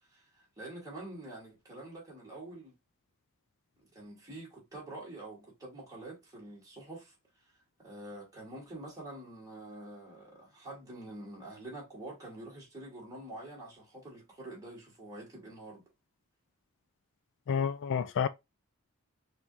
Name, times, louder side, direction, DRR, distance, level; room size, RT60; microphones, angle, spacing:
voice 1, 0.1-2.7 3.8-7.1 7.8-15.8, right 1 dB, 15° right, 2.8 m, -46 dB
voice 2, 17.5-18.3, left 7 dB, 55° left, 0.3 m, -29 dB
5.8 x 3.1 x 2.6 m
head